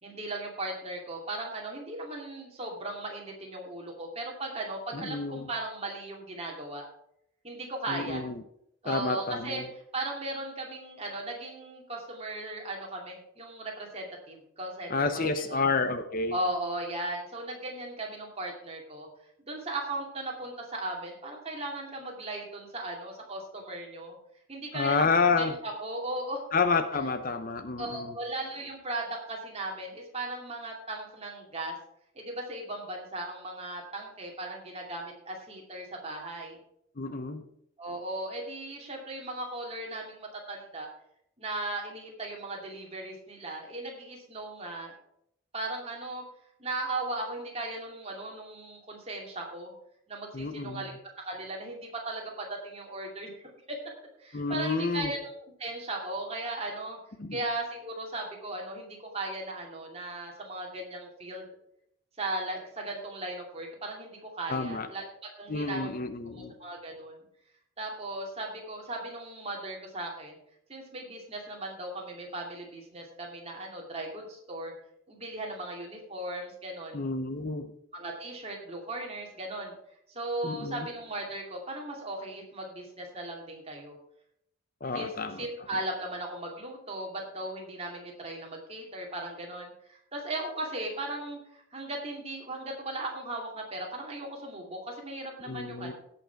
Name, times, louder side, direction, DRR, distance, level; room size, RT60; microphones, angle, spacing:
voice 1, 0.0-6.9 7.4-8.3 8.8-9.6 9.9-15.6 16.3-19.1 19.5-24.2 24.5-25.1 25.4-26.4 27.8-31.7 32.1-36.6 37.8-40.9 41.4-44.9 45.5-46.2 46.6-49.7 50.1-53.3 53.7-53.8 54.2-55.2 55.6-57.0 57.3-61.4 62.2-65.0 65.4-65.9 66.4-67.2 67.8-70.4 70.7-74.7 75.1-77.0 77.9-79.7 80.1-84.0 84.9-85.1 85.4-95.9, right 2 dB, 30° right, 0 dB, 2.5 m, -37 dB
voice 2, 4.9-5.5 7.9-8.4 8.8-9.7 14.9-16.4 24.7-25.6 26.5-28.1 37.0-37.4 50.3-50.9 54.3-55.1 57.2-57.4 64.5-64.9 65.5-66.5 76.9-77.7 80.4-80.9 84.8-85.5 95.5-95.9, left 4 dB, 40° left, 10 dB, 0.6 m, -29 dB
17.0 x 5.9 x 4.6 m, 0.74 s
head